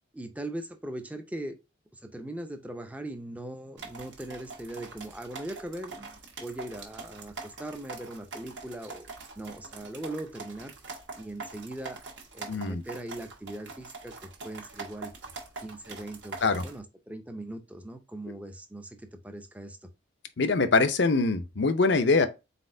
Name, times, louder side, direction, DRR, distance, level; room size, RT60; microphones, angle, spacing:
voice 1, 0.1-1.6 1.9-9.1 9.4-10.7 11.1-12.0 12.3-15.1 15.6-19.9, right 1 dB, 5° right, 0.5 m, -40 dB
sound 1, 3.8-16.8, right 3 dB, 60° right, 1.2 m, -44 dB
voice 2, 12.5-12.8 16.4-16.6 20.4-22.3, left 3 dB, 60° left, 0.6 m, -23 dB
4.2 x 4.1 x 2.6 m
head